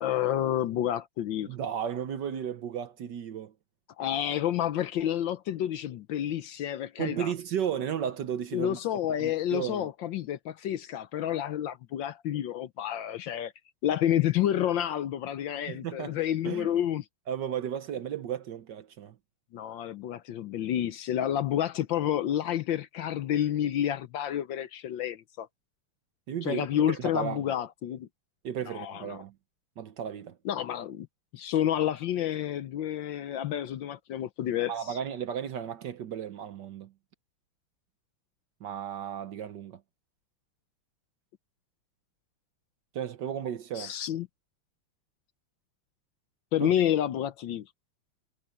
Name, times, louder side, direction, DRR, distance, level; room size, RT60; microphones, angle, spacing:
voice 1, 0.0-1.5 4.0-7.3 8.5-13.5 13.8-17.0 19.5-25.5 26.4-28.1 28.6-29.2 30.4-31.1 31.3-35.0 43.7-44.3 46.5-47.7, left 11 dB, 70° left, 1.3 m, -29 dB
voice 2, 1.5-3.5 7.0-8.8 9.2-9.9 15.7-16.2 16.4-16.7 17.3-19.1 26.3-27.4 28.4-29.3 29.8-30.4 34.7-36.9 38.6-39.8 42.9-43.9 46.6-46.7, right 9 dB, 60° right, 1.4 m, -34 dB
omnidirectional pair, 2.4 m